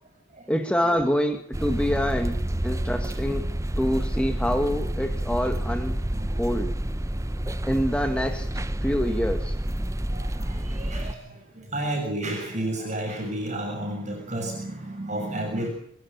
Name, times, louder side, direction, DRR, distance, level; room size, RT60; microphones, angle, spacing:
voice 1, 0.5-3.5 3.8-6.0 6.4-6.7 7.7-9.6, equal, 5° left, 5 dB, 1.6 m, -26 dB
sound 1, 1.5-11.1, right 1 dB, 15° right, 0.8 m, -29 dB
voice 2, 6.0-6.5 7.4-7.7 10.1-15.7, right 1 dB, 35° right, 2 dB, 6.8 m, -32 dB
27.0 x 13.0 x 9.3 m, 0.64 s
head